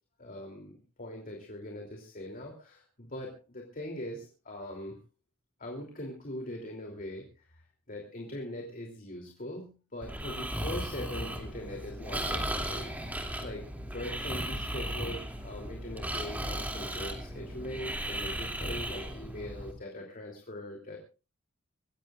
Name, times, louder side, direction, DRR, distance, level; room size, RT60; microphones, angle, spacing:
voice 1, 0.2-5.0 5.6-21.0, left 1 dB, 40° left, 1 dB, 3.1 m, -41 dB
Breathing, 10.0-19.7, right 1 dB, 10° right, 2.7 m, -36 dB
26.0 x 15.5 x 2.5 m, 0.33 s
head